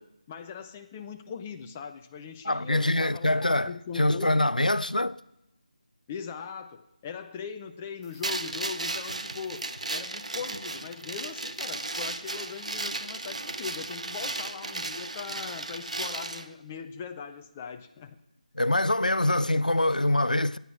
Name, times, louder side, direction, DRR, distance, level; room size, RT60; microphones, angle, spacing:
voice 1, 0.0-4.5 6.1-18.2, left 6 dB, 10° left, 0.4 m, -40 dB
voice 2, 2.4-5.2 18.5-20.6, left 1 dB, 80° left, 0.5 m, -24 dB
sound 1, 8.2-16.5, right 2 dB, 55° right, 0.8 m, -35 dB
12.5 x 9.3 x 6.1 m
figure-of-eight pair, 160°, 4 cm